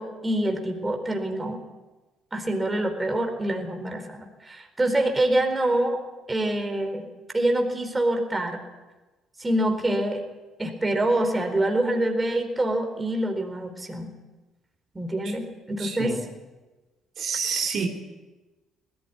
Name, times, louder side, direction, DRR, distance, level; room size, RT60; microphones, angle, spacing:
voice 1, 0.0-1.6 2.3-6.0 6.3-7.0 7.3-8.6 9.4-10.2 10.6-14.1 14.9-16.2, right 1 dB, 20° right, 4 dB, 4.4 m, -25 dB
voice 2, 15.8-16.2 17.2-17.9, right 6 dB, 55° right, 1 dB, 3.3 m, -28 dB
19.5 x 14.0 x 9.8 m, 1.2 s
hypercardioid pair, 55°, 0 cm